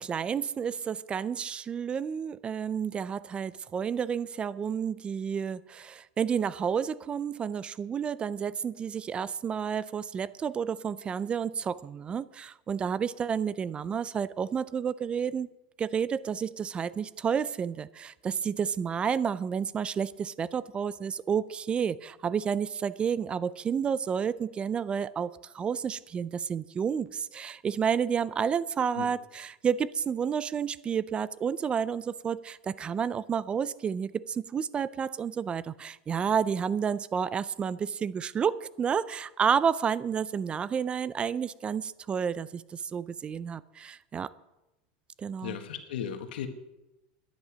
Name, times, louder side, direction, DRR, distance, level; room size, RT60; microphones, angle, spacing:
voice 1, 0.0-15.5 15.8-44.3 45.2-45.5, right 7 dB, 20° right, 0.3 m, -30 dB
voice 2, 45.4-46.5, left 9 dB, 85° left, 1.6 m, -36 dB
11.5 x 10.5 x 6.2 m
supercardioid pair, 140°, 5 cm